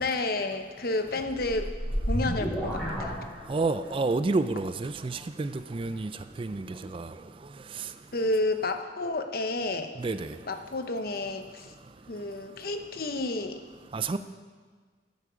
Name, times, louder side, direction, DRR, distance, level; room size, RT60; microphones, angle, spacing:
voice 1, 0.0-1.7 2.1-3.2 8.1-9.9 10.5-11.7 12.1-13.6, left 2 dB, 55° left, 7 dB, 0.8 m, -30 dB
sound 1, 1.1-3.9, equal, 5° left, 4.0 m, -31 dB
voice 2, 3.5-6.1 6.4-6.7 6.9-7.1 10.0-10.3 13.9-14.2, right 3 dB, 30° right, 11 dB, 0.4 m, -29 dB
13.5 x 8.4 x 5.1 m, 1.5 s
head